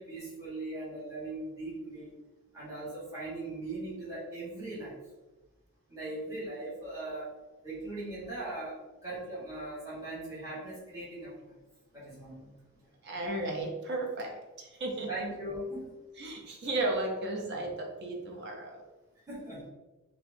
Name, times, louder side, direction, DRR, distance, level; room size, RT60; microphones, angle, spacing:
voice 1, 0.0-2.2 2.5-5.0 5.9-7.3 7.6-11.5 11.9-12.5 15.1-15.9 19.3-19.7, right 2 dB, 15° right, -10 dB, 1.2 m, -39 dB
voice 2, 13.0-15.1 16.2-18.8, right 2 dB, 50° right, 1 dB, 0.5 m, -34 dB
4.2 x 2.2 x 2.6 m, 1.1 s
head